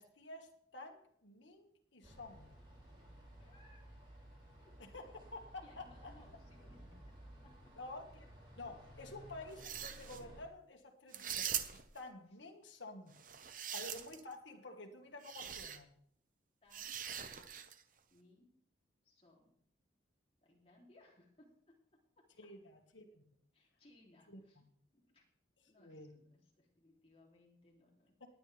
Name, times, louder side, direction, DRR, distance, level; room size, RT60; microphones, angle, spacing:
voice 1, 0.0-2.6 4.8-6.1 7.8-8.3 8.6-13.2 13.7-15.9 22.4-23.2 24.3-24.4 25.8-26.1, left 2 dB, 75° left, 3 dB, 1.9 m, -51 dB
sound 1, 2.0-10.5, equal, 30° right, 4.6 m, -56 dB
voice 2, 3.2-3.8 4.6-4.8 5.6-7.0 7.4-7.7 13.7-13.9 16.6-17.0 18.1-18.5 19.0-19.5 20.4-22.3 23.5-24.6 24.9-25.2 25.7-28.1, left 1 dB, 30° left, -2 dB, 3.4 m, -66 dB
sound 2, 9.5-10.2 11.1-12.0 13.1-14.3 15.2-15.8 16.7-17.8, right 9 dB, 45° right, 0.9 m, -42 dB
18.5 x 9.9 x 3.5 m, 0.66 s
head